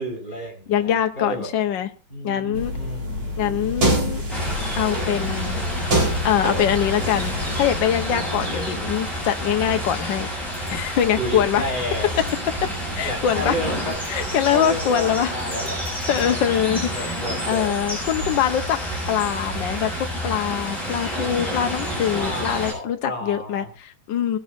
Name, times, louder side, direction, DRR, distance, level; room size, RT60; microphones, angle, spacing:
voice 1, 0.0-1.5 2.1-3.3 8.1-8.9 11.2-12.2 13.0-14.0 14.5-15.8 16.1-16.5 16.9-17.7 22.1-23.7, equal, 20° left, -2 dB, 5.4 m, -31 dB
voice 2, 0.7-1.9 2.2-2.7 3.4-4.2 4.8-5.6 6.2-10.3 10.7-11.6 12.6-12.7 13.0-13.5 14.1-15.3 15.8-17.1 17.5-18.8 19.1-24.4, left 9 dB, 65° left, 6 dB, 1.6 m, -23 dB
sound 1, 2.5-7.7, right 1 dB, 75° right, 4.9 m, -26 dB
sound 2, 4.3-22.7, equal, ahead, 7.7 m, -29 dB
20.5 x 11.5 x 2.6 m, 0.34 s
omnidirectional pair, 2.2 m